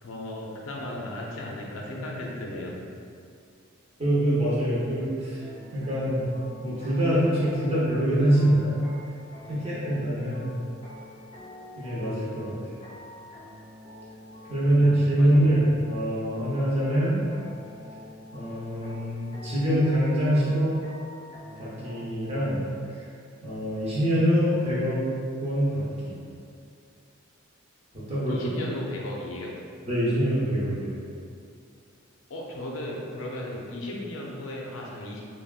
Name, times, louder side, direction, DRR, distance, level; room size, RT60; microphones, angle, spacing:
voice 1, 0.0-2.8 9.5-9.7 15.2-15.5 28.3-29.6 32.3-35.2, left 1 dB, 85° left, -2 dB, 0.5 m, -35 dB
voice 2, 4.0-5.4 5.7-6.2 6.6-8.8 9.5-10.5 11.8-12.5 14.5-17.2 18.3-20.7 21.6-22.6 22.9-23.0 23.4-25.0 25.4-26.2 27.9-28.4 29.9-31.0, equal, 30° right, -9 dB, 0.7 m, -24 dB
sound 1, 5.4-22.3, left 1 dB, 20° left, 0.5 m, -46 dB
3.4 x 2.2 x 2.3 m, 2.3 s
head